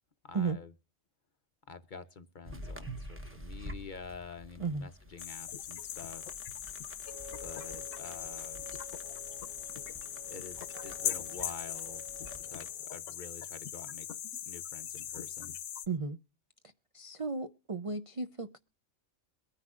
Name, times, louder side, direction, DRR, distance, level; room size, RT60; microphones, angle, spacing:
voice 1, 0.2-0.7 1.7-6.3 7.4-8.7 10.3-14.1 14.4-15.6, left 5 dB, 45° left, 0.7 m, -48 dB
sound 1, 2.4-12.7, equal, 10° right, 0.8 m, -49 dB
sound 2, 5.2-15.9, left 10 dB, 70° left, 1.1 m, -40 dB
sound 3, 7.1-12.9, left 1 dB, 30° right, 5.6 m, -51 dB
voice 2, 15.9-16.2 16.9-18.6, right 4 dB, 50° right, 0.4 m, -34 dB
22.5 x 9.8 x 2.4 m
omnidirectional pair, 1.4 m